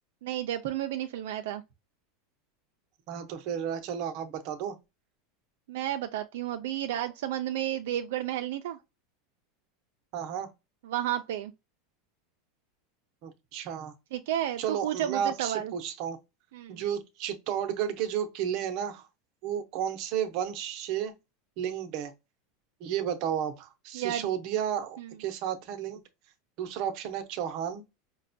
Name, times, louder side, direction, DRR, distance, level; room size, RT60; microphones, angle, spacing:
voice 1, 0.2-1.6 5.7-8.8 10.8-11.5 14.1-15.7 16.5-16.8 23.9-24.3 25.0-25.1, right 12 dB, 70° right, 0.4 m, -32 dB
voice 2, 3.1-4.8 10.1-10.5 13.2-13.9 14.6-16.2 16.7-19.1 19.4-21.1 21.6-22.1 22.8-26.0 26.6-27.8, right 9 dB, 40° right, 0.7 m, -32 dB
5.2 x 2.1 x 2.6 m
supercardioid pair, 170°, 0 cm